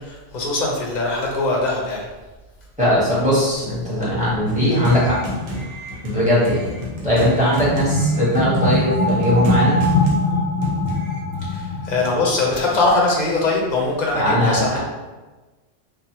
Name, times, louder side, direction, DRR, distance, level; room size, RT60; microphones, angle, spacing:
voice 1, 0.0-2.0 11.5-14.8, left 2 dB, 50° left, -2 dB, 0.7 m, -21 dB
voice 2, 2.8-5.2 6.0-6.7 7.0-9.8 14.1-14.8, equal, 5° right, -9 dB, 1.0 m, -19 dB
sound 1, 4.5-11.2, left 1 dB, 90° right, 1.0 m, -30 dB
sound 2, 7.7-13.0, left 1 dB, 80° left, 0.9 m, -22 dB
3.1 x 2.1 x 2.8 m, 1.2 s
omnidirectional pair, 1.1 m